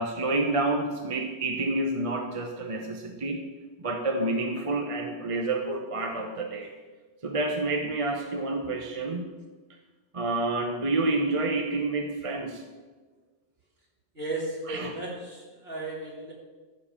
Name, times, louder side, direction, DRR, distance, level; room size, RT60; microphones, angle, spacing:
voice 1, 0.0-3.4 3.8-6.7 7.2-9.3 10.1-12.6 14.7-14.9, right 2 dB, 30° right, 3 dB, 0.9 m, -29 dB
voice 2, 14.1-16.3, right 2 dB, 65° right, -4 dB, 3.2 m, -35 dB
14.0 x 5.4 x 7.4 m, 1.3 s
omnidirectional pair, 1.1 m